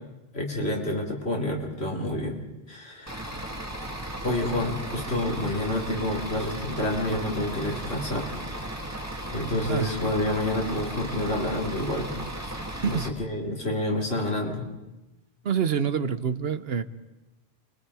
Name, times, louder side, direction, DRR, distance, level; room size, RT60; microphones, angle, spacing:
voice 1, 0.3-2.4 2.7-3.5 4.2-8.3 9.3-12.1 12.4-12.6 12.9-14.7, left 1 dB, 85° left, 0 dB, 3.4 m, -28 dB
Bus / Idling, 3.1-13.1, right 1 dB, 15° right, 2.1 m, -36 dB
voice 2, 15.4-16.8, right 7 dB, 75° right, 13 dB, 1.1 m, -26 dB
29.0 x 22.5 x 4.9 m, 1.0 s
omnidirectional pair, 1.0 m